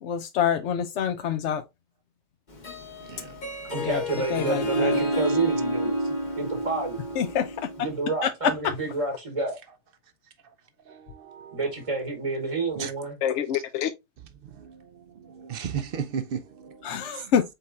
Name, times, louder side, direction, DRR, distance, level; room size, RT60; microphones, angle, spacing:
voice 1, 0.0-1.6 3.8-4.0 4.3-5.0 7.2-7.7 13.2-13.9 16.8-17.4, left 8 dB, 65° left, 0.8 m, -26 dB
Harp, 2.5-8.0, right 1 dB, 35° left, 1.0 m, -29 dB
voice 2, 3.0-3.4 10.4-10.5 10.9-11.7 12.8-12.9 13.5-13.6 14.4-17.3, right 7 dB, 60° right, 0.6 m, -36 dB
voice 3, 3.7-6.0 6.4-7.0 7.8-9.6 11.5-13.2, right 3 dB, 25° right, 0.9 m, -29 dB
5.2 x 4.2 x 2.4 m
omnidirectional pair, 1.4 m